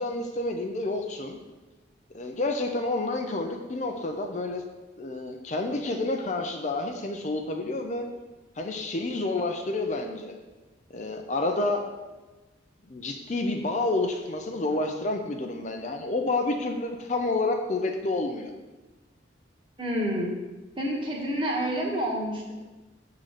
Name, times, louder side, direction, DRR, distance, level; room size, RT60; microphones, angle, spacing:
voice 1, 0.0-1.4 2.1-4.6 5.0-8.1 8.6-10.4 10.9-11.8 12.9-18.5, left 2 dB, 40° left, 4 dB, 0.6 m, -29 dB
voice 2, 19.8-20.3 20.8-22.6, equal, 25° right, -2 dB, 1.5 m, -28 dB
7.5 x 3.8 x 6.4 m, 1.2 s
head